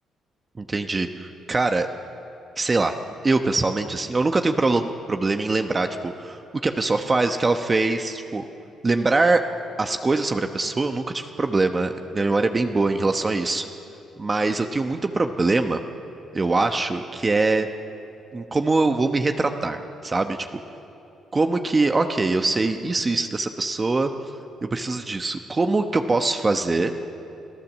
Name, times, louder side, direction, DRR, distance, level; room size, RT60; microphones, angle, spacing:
voice 1, 0.6-1.9 2.6-3.0 3.2-6.4 6.6-8.4 8.8-9.4 9.8-13.6 14.2-15.8 16.3-17.7 18.3-20.4 21.3-24.1 24.6-26.9, right 3 dB, 25° right, 6 dB, 1.0 m, -23 dB
26.0 x 14.5 x 7.4 m, 2.7 s
cardioid pair, 90°, 0 cm